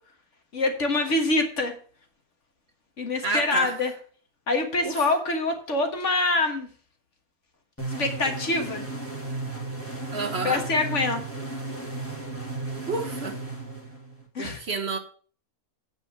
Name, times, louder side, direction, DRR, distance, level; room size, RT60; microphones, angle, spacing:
voice 1, 0.5-1.7 3.0-3.9 4.5-6.7 8.0-8.8 10.4-11.2 14.4-14.6, left 2 dB, 55° left, 5 dB, 1.9 m, -25 dB
voice 2, 3.2-3.8 4.8-5.0 10.1-10.6 12.9-13.4 14.4-15.0, right 3 dB, 50° right, 7 dB, 1.2 m, -29 dB
sound 1, 7.8-14.3, right 2 dB, 10° left, 2.3 m, -34 dB
8.9 x 5.6 x 6.9 m, 0.43 s
omnidirectional pair, 1.6 m